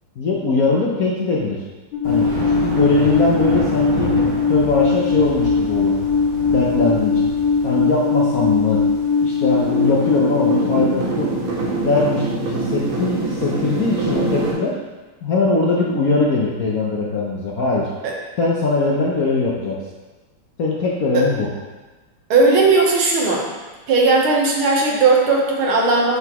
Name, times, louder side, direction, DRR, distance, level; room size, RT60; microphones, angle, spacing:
voice 1, 0.2-1.6 2.0-4.2 4.5-5.9 6.5-7.3 7.6-8.8 9.2-11.3 11.8-14.8 15.2-17.9 18.4-19.8 20.6-21.5, left 3 dB, 60° left, -4 dB, 0.9 m, -21 dB
Alarm, 1.9-10.8, left 5 dB, 80° left, 1.6 m, -19 dB
Thunder, 2.0-13.1, right 2 dB, 45° right, 1.7 m, -31 dB
sound 1, 9.5-14.5, right 2 dB, 90° right, 2.2 m, -25 dB
voice 2, 22.3-23.4 23.9-26.2, right 3 dB, 75° right, -2 dB, 1.9 m, -16 dB
7.9 x 5.8 x 3.0 m, 1.2 s
omnidirectional pair, 2.4 m